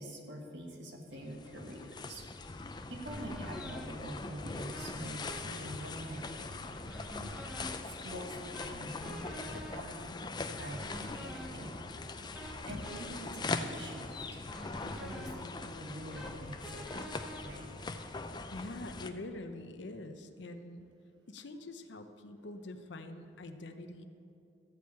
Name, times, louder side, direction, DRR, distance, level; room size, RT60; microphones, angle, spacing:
voice 1, 0.0-2.3 2.6-7.0 8.0-10.1 10.4-12.0 12.3-14.1 15.0-16.9 17.4-17.7, right 1 dB, 65° right, 2 dB, 1.5 m, -46 dB
sound 1, 1.1-19.1, left 3 dB, 25° left, 0.4 m, -42 dB
sound 2, 3.1-18.3, equal, 5° right, 1.0 m, -49 dB
voice 2, 18.5-20.9 21.3-24.1, left 2 dB, 70° left, 8 dB, 0.7 m, -45 dB
14.0 x 4.7 x 8.3 m, 2.7 s
head